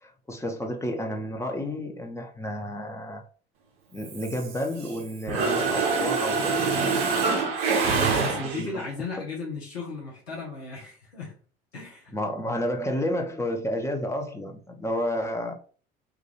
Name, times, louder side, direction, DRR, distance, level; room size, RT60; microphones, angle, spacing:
voice 1, 0.0-3.2 3.9-6.7 8.1-8.8 12.1-15.5, left 1 dB, 10° left, 0.6 m, -31 dB
Mechanisms, 4.0-5.0 5.3-8.8, right 4 dB, 55° right, 0.7 m, -25 dB
voice 2, 8.0-11.4 11.7-12.5, left 4 dB, 85° left, 0.7 m, -36 dB
2.4 x 2.2 x 2.9 m
figure-of-eight pair, 55°, 30 cm